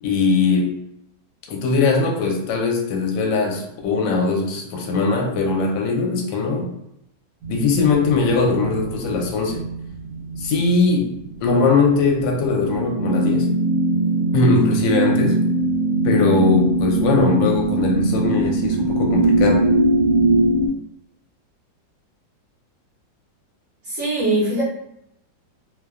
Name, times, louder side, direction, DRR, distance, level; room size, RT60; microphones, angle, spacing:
voice 1, 0.0-0.8 1.5-6.7 7.5-9.6 10.4-11.1 11.4-13.5 14.3-15.4 16.0-19.7, left 3 dB, 80° left, 1 dB, 1.2 m, -20 dB
sound 1, 7.4-10.6 11.0-20.7, right 2 dB, 80° right, 1.3 m, -21 dB
voice 2, 23.8-24.6, right 1 dB, 55° right, -7 dB, 1.0 m, -21 dB
3.0 x 2.1 x 2.3 m, 0.79 s
omnidirectional pair, 2.0 m